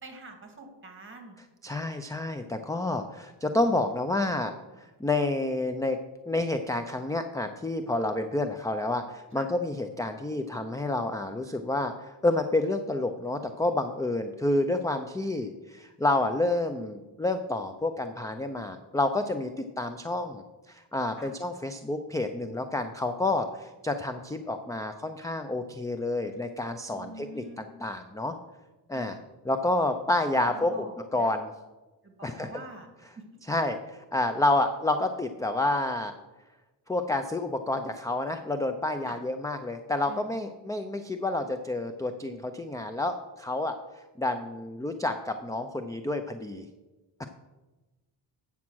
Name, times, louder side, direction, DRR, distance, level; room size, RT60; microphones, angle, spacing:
voice 1, 0.0-1.4 9.3-9.5 21.2-21.3 26.9-27.7 28.9-29.2 30.5-31.3 32.0-32.9 33.2-33.3 39.1-39.2 40.1-40.5, right 3 dB, 25° right, 4 dB, 2.0 m, -46 dB
voice 2, 1.6-6.0 6.3-28.4 28.9-29.2 29.5-30.7 31.1-31.5 32.2-32.5 33.5-36.1 36.9-46.7 47.2-47.3, left 2 dB, 10° left, 7 dB, 0.4 m, -29 dB
8.6 x 7.1 x 6.2 m, 1.1 s
cardioid pair, 120°, 44 cm